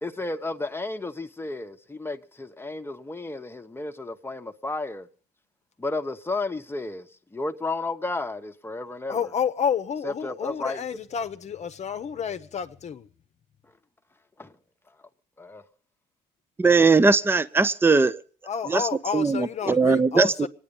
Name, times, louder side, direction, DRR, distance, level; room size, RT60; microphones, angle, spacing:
voice 1, 0.0-5.1 5.8-9.2 10.0-10.8 14.4-14.5 15.4-15.6, left 2 dB, 15° left, 1.0 m, -32 dB
voice 2, 9.1-13.1 18.4-20.5, left 7 dB, 40° left, 0.9 m, -30 dB
voice 3, 16.6-18.2 18.7-18.8 19.1-20.3, right 4 dB, 15° right, 0.7 m, -19 dB
25.0 x 9.9 x 5.4 m
cardioid pair, 110°, 17 cm